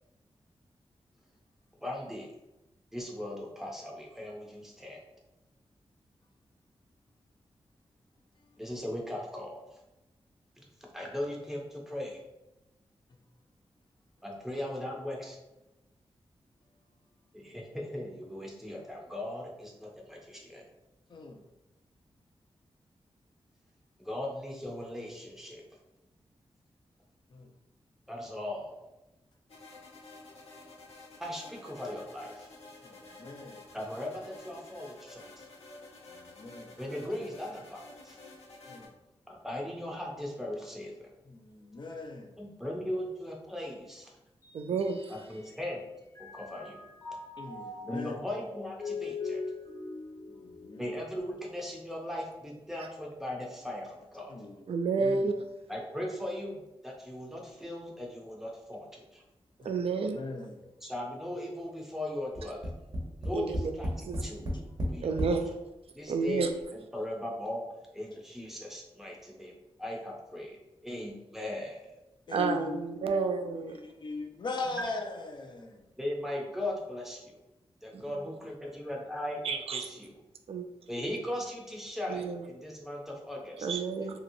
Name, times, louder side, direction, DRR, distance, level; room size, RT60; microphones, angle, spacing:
voice 1, 1.8-2.3 2.9-5.0 8.6-9.8 10.6-10.7 10.9-12.2 14.2-15.4 17.3-20.6 24.0-25.6 28.1-28.8 31.2-32.5 33.7-35.5 36.8-38.2 39.3-41.1 42.4-44.1 45.1-45.8 46.2-46.8 47.8-49.4 50.8-54.3 55.7-59.2 60.8-62.7 63.2-64.4 64.8-65.4 65.9-66.5 66.9-67.6 67.9-70.6 70.8-72.0 74.6-74.9 76.0-77.4 77.8-80.2 80.9-83.7, left 1 dB, 5° right, 0.6 m, -38 dB
voice 2, 21.1-21.4 27.3-27.5 32.8-33.6 36.1-36.8 38.7-38.9 41.3-42.4 44.7-44.8 47.4-48.2 50.3-51.0 54.3-55.3 59.6-59.8 60.1-60.6 67.0-67.1 72.3-75.8 78.0-78.2, left 3 dB, 45° left, 0.4 m, -40 dB
sound 1, 29.5-38.9, left 2 dB, 80° left, 0.9 m, -51 dB
Mallet percussion, 44.4-45.8 46.1-51.6, left 4 dB, 30° left, 0.8 m, -42 dB
voice 3, 44.5-45.1 54.7-55.3 59.6-60.2 63.3-63.7 64.1-64.2 65.0-65.5 66.1-66.5 72.3-73.8 77.9-78.0 79.4-79.9 80.5-80.7 82.1-82.4 83.6-84.2, right 4 dB, 70° right, 0.3 m, -30 dB
Tap, 62.3-65.4 66.2-66.3 66.6-66.7, equal, 40° right, 0.7 m, -33 dB
2.9 x 2.8 x 2.6 m
wide cardioid pair, 150°, 10 cm